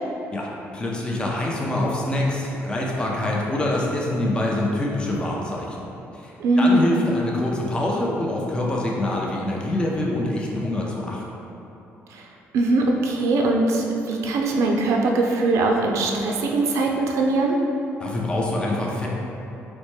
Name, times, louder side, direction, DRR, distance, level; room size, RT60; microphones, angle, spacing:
voice 1, 0.3-5.9 6.1-11.2 18.0-19.1, left 1 dB, 20° left, -3 dB, 0.5 m, -25 dB
voice 2, 6.4-6.8 12.1-12.3 12.5-17.6, right 2 dB, 75° right, 0 dB, 0.4 m, -21 dB
4.1 x 2.2 x 3.1 m, 2.9 s
cardioid pair, 110°, 5 cm